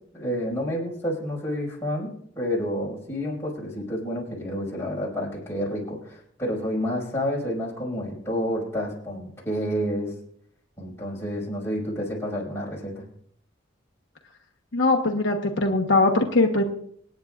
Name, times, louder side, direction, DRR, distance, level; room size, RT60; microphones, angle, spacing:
voice 1, 0.1-2.1 2.4-10.1 10.8-13.0, equal, 15° left, -5 dB, 5.2 m, -29 dB
voice 2, 14.7-16.6, left 2 dB, 65° left, 1 dB, 1.2 m, -21 dB
26.5 x 9.6 x 2.5 m, 0.65 s
head